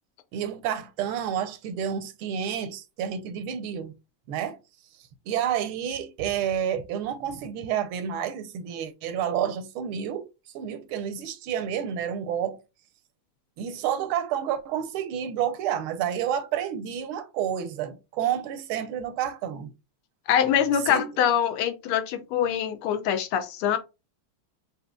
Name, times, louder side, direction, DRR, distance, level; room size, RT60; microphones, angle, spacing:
voice 1, 0.3-3.9 4.3-4.6 5.3-10.3 10.5-12.6 13.6-19.7 20.9-21.0, right 9 dB, 80° right, 1.5 m, -29 dB
voice 2, 20.3-23.8, left 9 dB, 85° left, 1.6 m, -24 dB
6.3 x 2.8 x 2.2 m
omnidirectional pair, 2.3 m